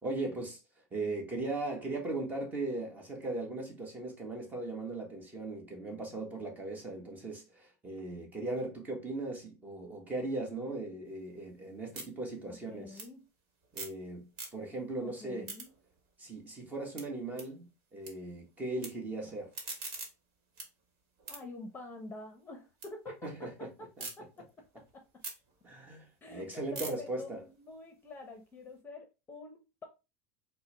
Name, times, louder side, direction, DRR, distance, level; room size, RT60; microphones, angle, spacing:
voice 1, 0.0-0.6 0.9-13.0 13.7-15.5 16.2-19.5 23.2-23.7 24.0-24.1 25.6-27.4, right 2 dB, 20° right, 1.3 m, -38 dB
sound 1, 11.1-14.0 14.3-14.9 15.2-18.1 18.4-18.9 19.3-22.9 23.3-24.1 24.6-28.7, right 3 dB, 50° right, 1.4 m, -47 dB
voice 2, 12.4-13.3 15.0-15.7 21.3-25.0 26.2-29.9, left 2 dB, 25° left, 0.8 m, -47 dB
4.3 x 2.2 x 3.3 m
supercardioid pair, 125°, 8 cm